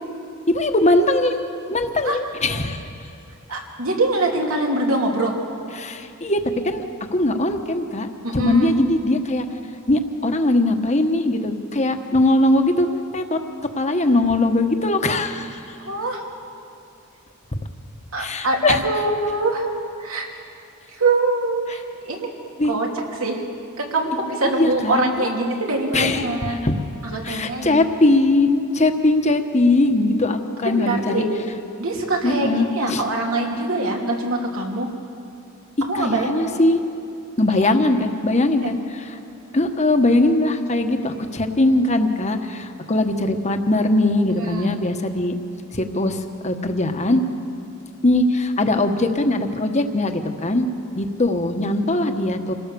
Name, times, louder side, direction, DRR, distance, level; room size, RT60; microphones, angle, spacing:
voice 1, 0.5-2.8 5.7-6.4 6.6-6.8 7.1-9.4 9.9-12.9 13.1-13.4 13.7-15.6 18.2-18.8 22.6-22.8 24.4-25.3 25.9-26.7 27.2-31.2 32.2-33.0 35.9-36.8 37.4-39.2 39.5-45.3 45.7-47.2 48.0-50.7 51.0-52.5, left 2 dB, 35° left, 6 dB, 1.3 m, -20 dB
voice 2, 3.5-5.3 8.2-8.7 15.8-16.2 18.1-19.6 20.0-20.3 20.9-22.3 22.7-22.9 23.2-23.4 23.8-26.6 27.0-27.8 30.7-31.3 31.8-34.9 35.9-36.5 37.5-37.7 38.6-38.7 44.4-44.8, right 2 dB, 80° right, 0 dB, 3.0 m, -23 dB
27.0 x 17.5 x 7.0 m, 2.6 s
head